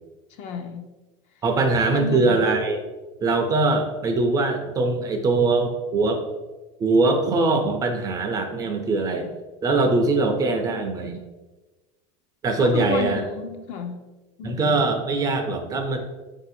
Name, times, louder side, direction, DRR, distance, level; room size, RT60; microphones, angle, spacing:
voice 1, 0.4-0.8 1.9-2.4 12.6-14.0 14.4-14.8, left 6 dB, 45° left, 6 dB, 0.5 m, -31 dB
voice 2, 1.4-2.8 3.2-6.2 6.8-9.3 9.6-11.2 12.4-13.2 14.4-16.0, right 3 dB, 20° right, 4 dB, 0.4 m, -22 dB
4.2 x 2.7 x 4.1 m, 1.2 s
supercardioid pair, 145°, 16 cm